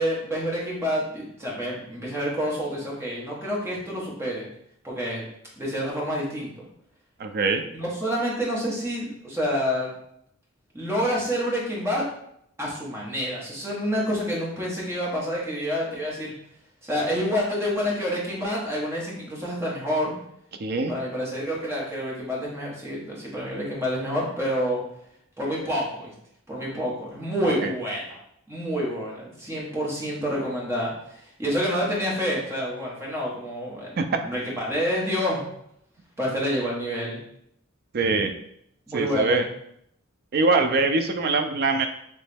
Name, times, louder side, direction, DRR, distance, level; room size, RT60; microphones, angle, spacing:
voice 1, 0.0-4.5 4.8-5.2 5.6-6.5 7.7-9.9 10.7-12.0 12.6-16.3 16.8-20.1 20.9-24.8 25.4-26.1 26.5-28.2 28.5-33.9 34.2-35.4 36.2-37.2 38.9-39.4, equal, 10° right, -4 dB, 1.0 m, -28 dB
voice 2, 7.2-7.6 20.6-20.9 27.5-27.7 34.0-34.3 37.9-38.3 38.9-39.5 40.3-41.9, right 3 dB, 50° right, 7 dB, 0.4 m, -23 dB
3.1 x 3.0 x 3.3 m, 0.72 s
head